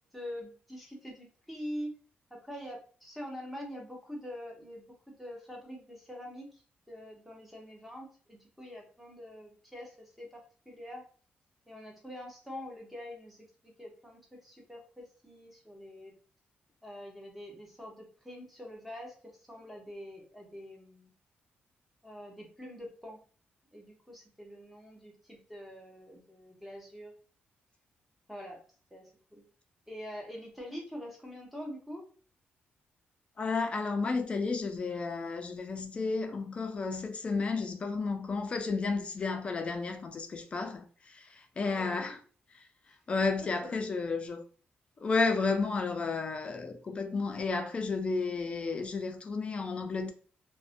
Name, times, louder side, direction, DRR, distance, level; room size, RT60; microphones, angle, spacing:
voice 1, 0.1-1.9 2.3-11.0 11.7-16.1 16.8-21.1 22.0-23.2 23.7-27.1 28.3-28.6 28.9-29.5 29.9-32.1 41.7-42.0 43.4-43.8, equal, ahead, 0.7 m, -45 dB
voice 2, 33.4-42.2 42.5-42.7 43.1-44.4 45.0-50.1, left 4 dB, 30° left, 0.3 m, -32 dB
2.4 x 2.1 x 2.5 m
wide cardioid pair, 150°, 4 cm